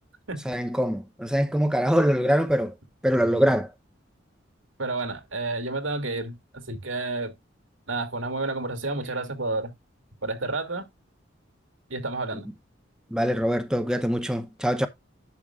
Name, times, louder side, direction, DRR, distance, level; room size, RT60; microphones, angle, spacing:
voice 1, 0.4-2.7 3.0-3.7 13.1-14.9, equal, 5° right, 0.7 m, -23 dB
voice 2, 4.8-7.3 7.9-9.7 10.2-10.9 11.9-12.5, right 3 dB, 90° right, 2.5 m, -30 dB
11.0 x 6.9 x 2.4 m
head